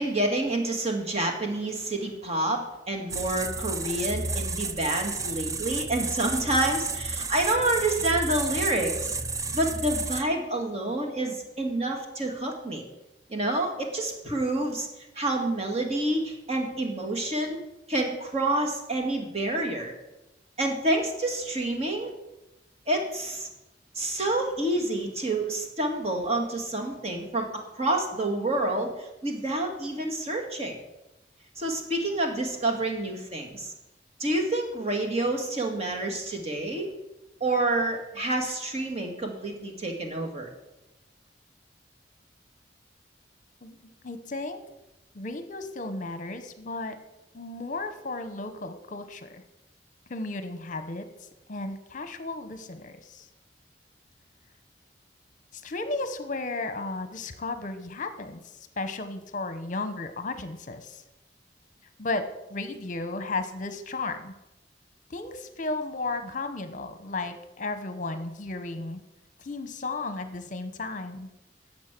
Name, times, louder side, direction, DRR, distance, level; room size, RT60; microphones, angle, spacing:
voice 1, 0.0-9.2 9.5-12.8 13.3-14.9 15.2-17.6 17.9-19.9 20.6-22.1 22.9-23.5 24.0-27.5 27.8-30.8 31.6-33.7 34.2-36.9 37.4-40.5, right 1 dB, 35° right, 3 dB, 1.8 m, -28 dB
sound 1, 3.1-10.2, right 4 dB, 20° right, 0.5 m, -32 dB
voice 2, 43.6-44.6 45.1-47.0 47.3-49.4 50.1-51.1 51.5-53.3 55.5-61.0 62.0-64.3 65.1-69.0 69.4-71.3, left 3 dB, 45° left, 9 dB, 1.0 m, -34 dB
11.5 x 7.4 x 6.1 m, 0.94 s
head